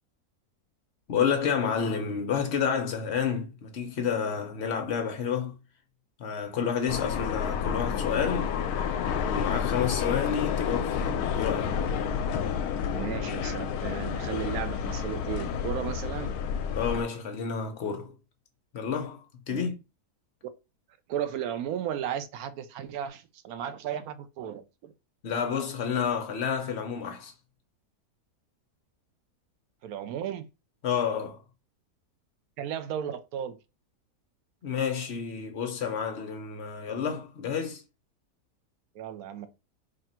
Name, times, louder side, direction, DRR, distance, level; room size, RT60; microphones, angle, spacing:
voice 1, 1.1-5.6 6.2-8.6 9.1-11.8 16.7-18.1 18.7-19.7 25.2-27.3 30.8-31.4 34.6-37.8, left 7 dB, 55° left, 0.9 m, -30 dB
sound 1, 6.9-17.0, left 7 dB, 75° left, 1.1 m, -30 dB
voice 2, 12.9-16.3 19.5-19.7 21.1-24.9 29.8-30.5 32.6-33.6 38.9-39.5, right 10 dB, 70° right, 1.0 m, -35 dB
3.3 x 2.5 x 4.2 m
omnidirectional pair, 1.7 m